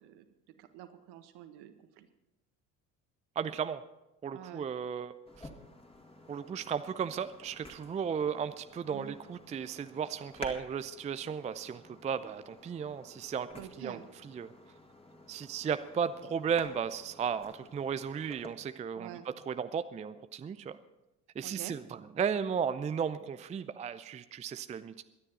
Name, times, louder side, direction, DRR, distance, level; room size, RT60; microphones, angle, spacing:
voice 1, 0.6-2.1 4.3-4.7 8.9-9.1 13.6-14.1 19.0-19.3 21.4-21.8, right 11 dB, 60° right, 9 dB, 1.5 m, -47 dB
voice 2, 3.4-3.8 4.2-5.5 6.3-14.5 15.3-19.1 19.5-20.8 21.4-25.0, right 7 dB, 15° right, 12 dB, 0.4 m, -35 dB
sound 1, 5.3-18.5, left 1 dB, 10° left, 2.2 m, -52 dB
23.0 x 9.8 x 4.2 m, 0.96 s
figure-of-eight pair, 60°, 46 cm